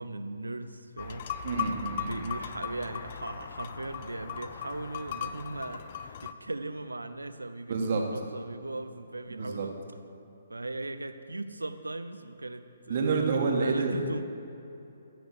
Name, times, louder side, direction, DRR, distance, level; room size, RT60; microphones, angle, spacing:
voice 1, 0.0-1.3 2.0-9.8 10.5-14.2, right 2 dB, 85° right, 10 dB, 0.7 m, -38 dB
sound 1, 1.0-6.3, left 8 dB, 45° left, 0.5 m, -38 dB
voice 2, 1.4-2.1 7.7-8.0 9.3-9.7 12.9-14.0, right 4 dB, 50° right, 2 dB, 1.7 m, -28 dB
15.0 x 6.1 x 6.8 m, 2.8 s
figure-of-eight pair, 135°, 0 cm